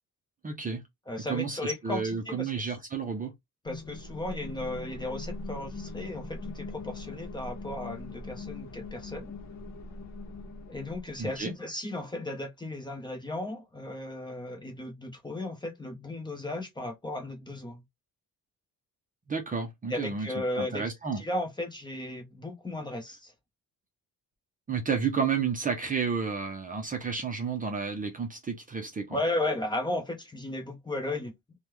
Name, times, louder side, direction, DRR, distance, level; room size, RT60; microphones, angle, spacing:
voice 1, 0.4-0.8 1.3-3.3 11.2-11.5 19.3-20.3 20.6-21.2 24.7-29.2, right 5 dB, 25° right, 0.6 m, -31 dB
voice 2, 1.1-2.5 3.6-9.3 10.7-17.8 19.9-20.8 21.2-23.3 29.1-31.3, left 1 dB, 15° left, 0.7 m, -35 dB
sound 1, 3.7-11.4, left 2 dB, 55° left, 0.8 m, -41 dB
3.5 x 2.2 x 3.0 m
cardioid pair, 160°, 33 cm